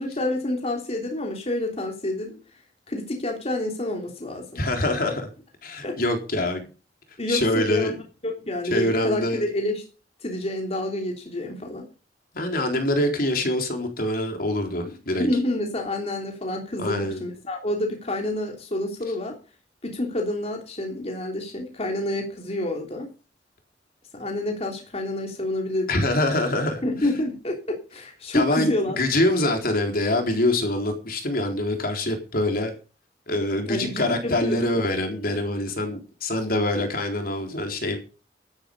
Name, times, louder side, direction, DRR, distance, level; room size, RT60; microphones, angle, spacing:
voice 1, 0.0-2.4 2.9-4.6 5.8-6.0 7.2-8.0 8.2-9.8 10.2-11.9 15.2-19.4 19.8-23.1 24.2-25.9 26.8-29.0 33.7-34.8, left 1 dB, 35° left, 2 dB, 3.3 m, -28 dB
voice 2, 4.6-5.3 5.6-6.6 7.3-7.9 8.7-9.5 12.3-15.3 16.8-17.2 25.9-26.8 28.3-32.7 33.3-38.0, left 1 dB, 55° left, 4 dB, 3.9 m, -25 dB
12.5 x 11.5 x 5.4 m, 0.34 s
head